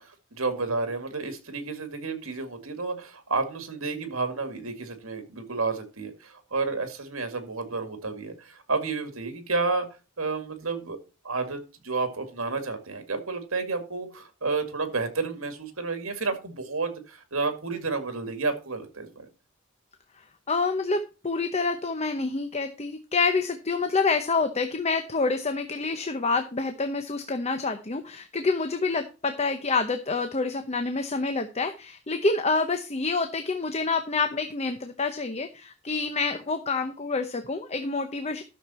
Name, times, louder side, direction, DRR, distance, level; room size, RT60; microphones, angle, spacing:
voice 1, 0.0-11.0 11.2-19.3, right 3 dB, 80° right, 8 dB, 2.1 m, -31 dB
voice 2, 20.5-38.4, left 4 dB, 30° left, 7 dB, 0.8 m, -27 dB
12.0 x 6.6 x 4.2 m, 0.31 s
head